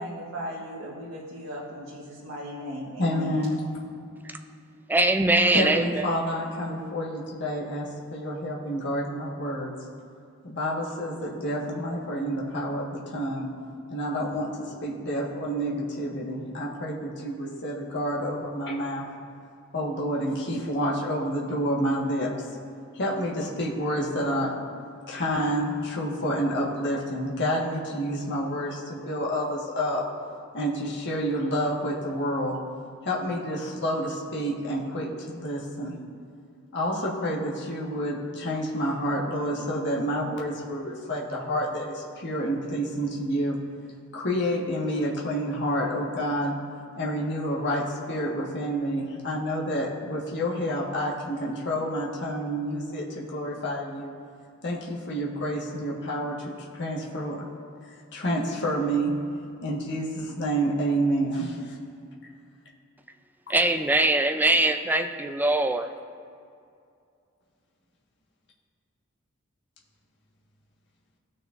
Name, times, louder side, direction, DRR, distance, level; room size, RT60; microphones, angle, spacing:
voice 1, 0.0-3.5, equal, 80° right, -7 dB, 1.5 m, -37 dB
voice 2, 3.0-3.6 5.5-9.7 10.4-13.5 13.9-19.1 19.7-22.3 22.9-24.5 25.1-30.0 30.5-32.6 33.0-35.9 36.7-43.6 44.1-46.5 47.0-54.1 54.6-57.4 58.1-59.1 59.6-61.7, equal, 55° left, -4 dB, 1.5 m, -29 dB
voice 3, 4.9-6.0 63.5-65.9, right 2 dB, 10° right, 6 dB, 0.4 m, -22 dB
17.5 x 6.5 x 2.5 m, 2.4 s
head